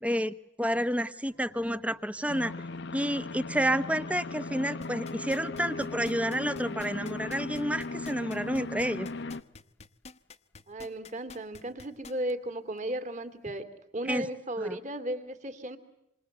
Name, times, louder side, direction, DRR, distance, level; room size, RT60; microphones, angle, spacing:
voice 1, 0.0-2.5 2.9-9.1 14.1-14.3 14.6-14.8, equal, 5° right, 13 dB, 1.0 m, -30 dB
sound 1, 1.3-9.9, right 1 dB, 85° right, 5.8 m, -61 dB
sound 2, 2.3-9.4, left 3 dB, 60° left, 0.9 m, -38 dB
sound 3, 4.8-12.3 12.8-12.9, left 4 dB, 35° left, 1.1 m, -48 dB
voice 2, 10.7-15.8, right 1 dB, 40° right, 10 dB, 2.6 m, -35 dB
27.5 x 27.0 x 8.0 m, 0.90 s
head